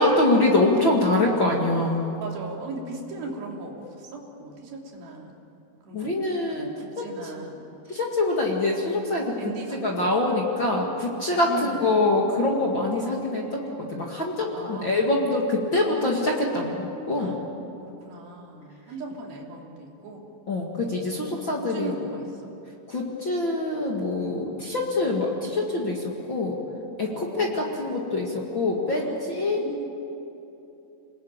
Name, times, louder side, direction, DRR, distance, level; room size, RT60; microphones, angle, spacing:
voice 1, 0.0-2.0 5.9-7.1 7.9-9.4 9.8-17.3 20.5-21.9 22.9-26.6 27.0-29.6, left 2 dB, 45° left, -2 dB, 1.5 m, -24 dB
voice 2, 2.2-5.3 5.8-6.1 6.5-7.8 9.4-10.1 11.5-12.0 14.5-15.1 17.2-17.4 17.8-20.2 20.9-21.1 21.7-22.5 27.1-27.9 28.9-29.9, right 2 dB, 50° right, -1 dB, 4.6 m, -38 dB
27.5 x 20.5 x 9.0 m, 2.9 s
omnidirectional pair, 5.7 m